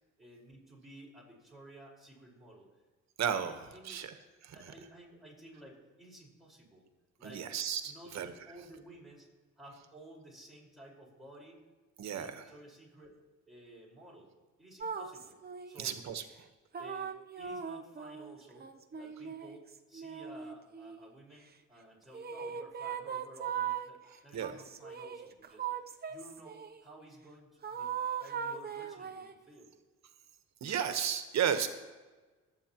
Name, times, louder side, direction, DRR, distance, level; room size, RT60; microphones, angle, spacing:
voice 1, 0.2-2.8 3.5-4.0 4.5-6.9 7.2-7.5 7.8-8.2 8.4-9.3 9.6-11.6 12.1-13.2 13.5-14.3 14.6-15.4 15.6-15.9 16.8-29.7, right 1 dB, ahead, -4 dB, 4.8 m, -54 dB
voice 2, 3.2-4.2 4.4-4.7 7.2-8.3 12.0-12.5 15.8-16.5 24.3-24.5 30.6-31.7, right 8 dB, 65° right, 9 dB, 1.2 m, -34 dB
sound 1, 14.8-16.0 16.7-21.1 22.1-23.9 24.4-26.8 27.6-29.4, right 7 dB, 30° right, 0.7 m, -39 dB
24.5 x 8.8 x 3.0 m, 1.3 s
cardioid pair, 90°, 30 cm